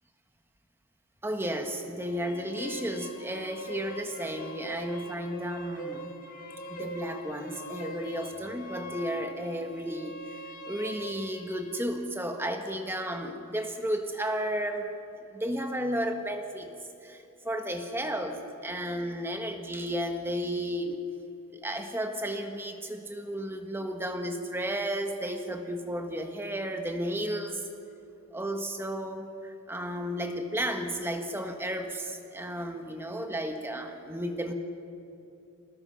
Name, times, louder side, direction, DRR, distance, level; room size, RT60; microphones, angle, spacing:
voice 1, 1.2-6.1 6.7-10.4 10.7-14.9 15.3-16.7 17.0-21.0 21.5-27.6 28.3-34.5, equal, 10° right, 5 dB, 1.4 m, -33 dB
sound 1, 1.9-11.9, equal, 40° left, 1.9 m, -42 dB
27.5 x 18.5 x 5.6 m, 2.7 s
head